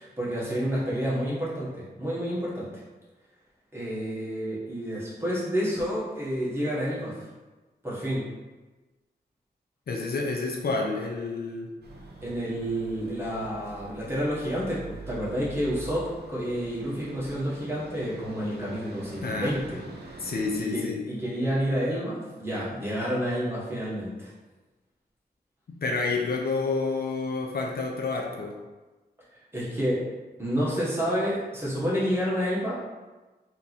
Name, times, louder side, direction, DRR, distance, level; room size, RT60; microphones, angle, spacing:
voice 1, 0.0-2.7 3.7-7.3 7.8-8.3 12.2-24.3 29.5-30.0 30.4-32.7, equal, 15° right, -8 dB, 1.4 m, -29 dB
voice 2, 9.9-11.7 19.2-19.5 20.2-21.0 25.7-28.6, left 3 dB, 65° left, 1 dB, 0.5 m, -29 dB
sound 1, 11.8-20.6, right 3 dB, 70° right, 0.8 m, -44 dB
3.5 x 3.0 x 4.0 m, 1.2 s
wide cardioid pair, 135°, 17 cm